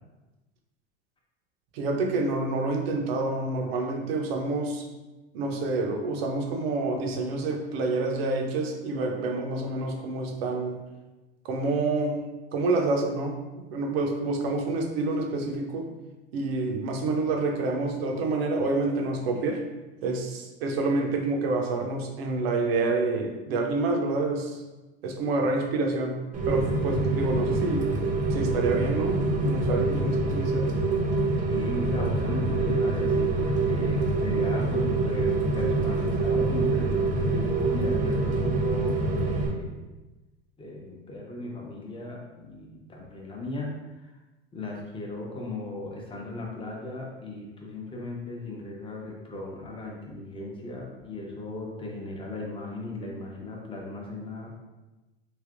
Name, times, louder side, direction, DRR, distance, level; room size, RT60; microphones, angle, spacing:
voice 1, 1.7-4.8 5.3-10.8 11.4-12.2 12.5-15.9 16.3-19.6 20.0-24.6 25.0-27.9 28.3-30.7, right 3 dB, 70° right, 1 dB, 0.7 m, -28 dB
Rain, 26.3-39.5, right 3 dB, 25° right, 0.6 m, -25 dB
voice 2, 31.4-39.8 40.6-43.7 44.0-44.1 44.5-54.6, left 2 dB, 15° left, -1 dB, 0.8 m, -36 dB
3.3 x 2.7 x 2.5 m, 1.1 s
hypercardioid pair, 90°, 32 cm